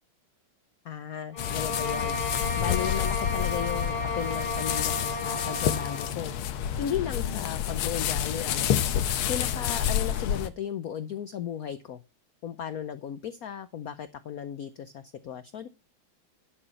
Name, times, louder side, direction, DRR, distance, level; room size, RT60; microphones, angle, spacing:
voice 1, 0.8-6.3 6.8-9.0 9.3-12.0 12.4-15.7, left 9 dB, 65° left, 12 dB, 0.9 m, -35 dB
sound 1, 1.3-6.2, left 3 dB, 15° left, 2.0 m, -33 dB
sound 2, 1.4-10.5, left 10 dB, 90° left, 1.8 m, -29 dB
11.0 x 6.6 x 5.6 m, 0.28 s
omnidirectional pair, 2.3 m